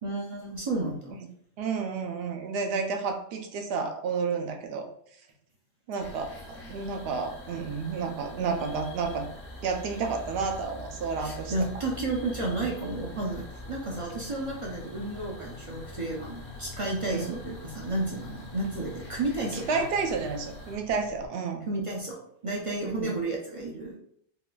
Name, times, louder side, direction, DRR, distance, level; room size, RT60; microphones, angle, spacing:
voice 1, 0.0-1.2 11.2-19.8 21.7-24.0, right 2 dB, 45° right, -2 dB, 0.4 m, -32 dB
voice 2, 1.6-4.9 5.9-9.3 9.6-11.5 17.1-17.3 19.5-21.7 22.8-23.1, right 5 dB, 70° right, 4 dB, 0.8 m, -31 dB
Night Time Amb, 6.0-20.8, left 1 dB, 60° left, 0.8 m, -45 dB
sound 1, 11.4-21.3, left 4 dB, 85° left, 1.0 m, -48 dB
3.7 x 2.4 x 2.3 m, 0.66 s
omnidirectional pair, 1.1 m